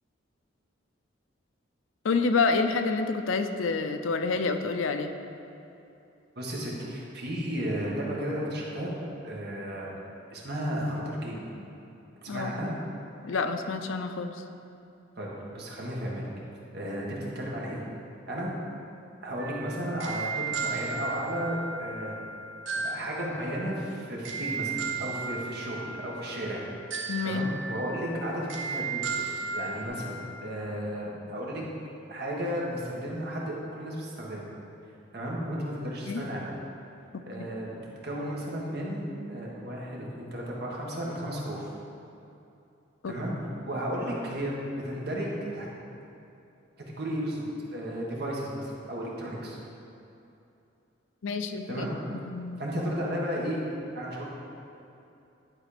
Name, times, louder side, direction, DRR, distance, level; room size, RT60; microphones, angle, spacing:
voice 1, 2.0-5.1 12.3-12.5 13.2-14.3 27.1-27.4 36.1-36.2 37.4-37.5 43.0-43.1 51.2-51.9 52.2-52.8, left 4 dB, 85° left, 8 dB, 0.5 m, -28 dB
voice 2, 6.3-8.9 9.2-10.0 10.3-11.5 12.2-12.7 15.2-16.3 16.7-17.8 18.3-18.5 19.2-22.2 22.7-26.6 27.2-29.2 29.5-31.6 32.1-34.4 35.1-36.5 37.3-41.7 43.1-43.4 43.6-45.7 46.9-47.4 47.7-49.6 51.7-52.0 52.6-53.6 53.9-54.3, equal, 55° right, -3 dB, 1.5 m, -34 dB
sound 1, 19.4-29.9, right 4 dB, 70° right, 0.9 m, -35 dB
11.0 x 4.2 x 5.0 m, 2.8 s
head